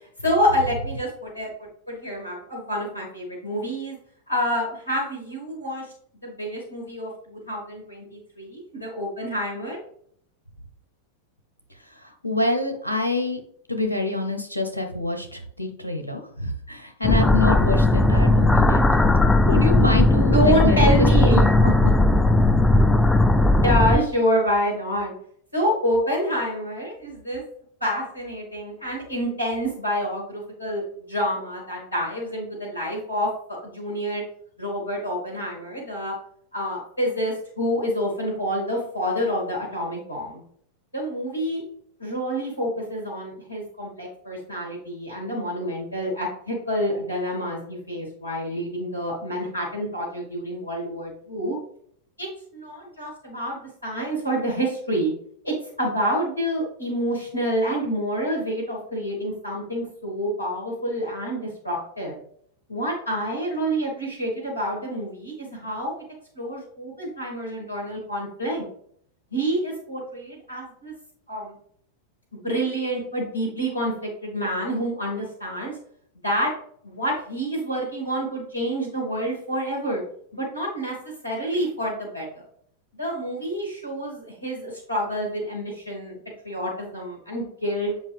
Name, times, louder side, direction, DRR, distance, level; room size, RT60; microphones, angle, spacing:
voice 1, 0.2-4.0 4.3-5.9 6.2-9.8 20.2-21.9 23.6-25.1 25.5-27.4 27.8-34.2 34.6-36.1 36.5-40.4 40.9-41.6 42.0-51.6 52.2-55.1 55.4-62.2 62.7-65.9 66.3-68.6 69.3-70.9 71.3-71.6 72.3-75.7 76.2-76.5 76.8-80.0 80.3-80.9 81.2-82.4 82.9-86.2 86.4-87.9, equal, 90° right, -2 dB, 2.6 m, -27 dB
voice 2, 12.0-13.4 13.7-18.8 19.5-21.5, left 3 dB, 85° left, 6 dB, 0.9 m, -26 dB
sound 1, 17.0-24.0, left 2 dB, 5° left, 0.4 m, -17 dB
8.1 x 5.2 x 3.5 m, 0.63 s
figure-of-eight pair, 90°, 0 cm